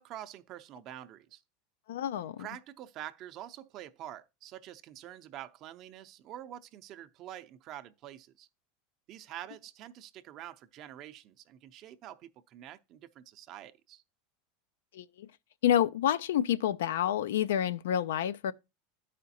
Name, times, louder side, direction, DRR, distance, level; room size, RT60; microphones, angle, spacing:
voice 1, 0.0-1.4 2.2-8.5 9.1-14.0, right 12 dB, 45° right, 0.6 m, -46 dB
voice 2, 1.9-2.5 14.9-15.3 15.6-18.5, left 10 dB, 85° left, 0.4 m, -28 dB
12.5 x 5.0 x 2.7 m
supercardioid pair, 125°, 0 cm